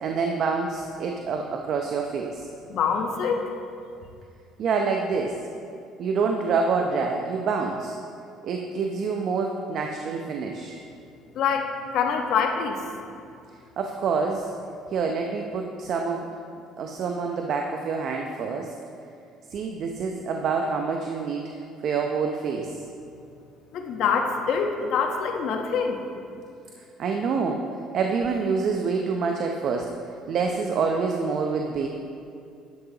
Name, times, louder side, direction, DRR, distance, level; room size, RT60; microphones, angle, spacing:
voice 1, 0.0-2.5 4.6-5.4 6.0-8.0 8.4-10.8 13.8-14.5 14.9-16.3 16.8-18.8 19.5-21.5 21.8-22.8 26.8-30.0 30.3-31.9, right 5 dB, 60° right, 2 dB, 0.7 m, -27 dB
voice 2, 2.7-3.4 11.3-12.8 23.7-26.0, left 6 dB, 65° left, 3 dB, 1.1 m, -25 dB
11.0 x 10.5 x 2.9 m, 2.4 s
supercardioid pair, 70°, 0 cm